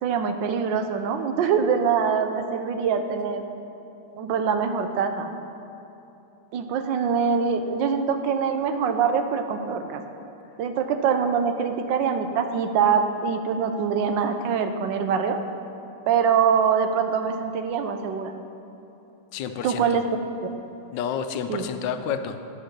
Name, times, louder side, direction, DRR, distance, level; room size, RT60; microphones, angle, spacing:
voice 1, 0.0-3.4 4.1-5.3 6.5-10.0 10.6-15.4 16.1-18.3 19.6-20.1 20.4-20.5 21.5-21.7, right 6 dB, 90° right, 7 dB, 1.4 m, -24 dB
voice 2, 19.3-20.0 20.9-22.4, left 7 dB, 80° left, 8 dB, 1.3 m, -30 dB
10.5 x 5.0 x 6.5 m, 2.9 s
omnidirectional pair, 1.9 m